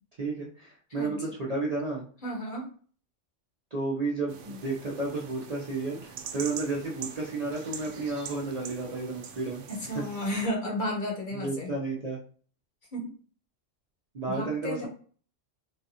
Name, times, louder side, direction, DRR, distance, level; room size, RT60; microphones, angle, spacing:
voice 1, 0.2-2.1 3.7-9.6 9.9-10.0 11.4-12.2 14.1-14.9, right 3 dB, 40° right, -4 dB, 0.6 m, -32 dB
voice 2, 0.9-1.3 2.2-2.7 9.7-11.7 12.9-13.1 14.3-14.9, equal, 45° left, -1 dB, 0.9 m, -33 dB
sound 1, 4.3-10.5, right 7 dB, 80° right, 0.9 m, -43 dB
4.0 x 2.3 x 2.7 m, 0.43 s
omnidirectional pair, 1.2 m